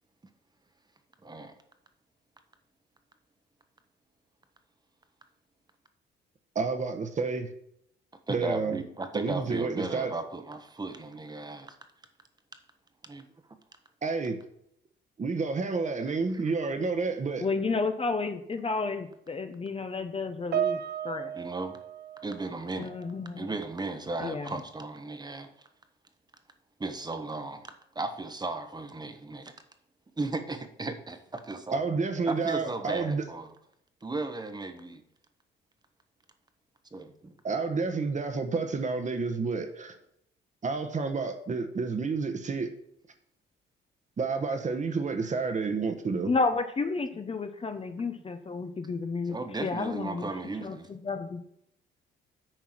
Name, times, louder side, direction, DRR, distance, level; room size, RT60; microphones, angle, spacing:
voice 1, 1.2-1.6 8.3-11.7 13.0-13.2 16.1-16.5 21.3-21.8 22.2-22.9 23.4-25.7 26.8-29.5 30.2-31.8 32.3-33.5 34.0-35.0 36.9-37.3 49.3-50.9, right 2 dB, 20° right, 1.1 m, -36 dB
voice 2, 6.5-7.5 8.3-8.8 9.1-10.2 14.0-14.4 15.2-17.4 31.7-33.2 37.4-40.0 40.6-42.7 44.2-46.3, right 4 dB, 35° right, 1.2 m, -30 dB
voice 3, 17.4-21.3 22.8-23.5 24.2-24.6 46.3-50.3 50.6-51.4, left 4 dB, 30° left, 0.8 m, -31 dB
Piano, 20.5-23.2 23.4-23.8 24.5-24.7, right 10 dB, 55° right, 0.6 m, -34 dB
9.1 x 4.7 x 6.0 m
cardioid pair, 90°, 20 cm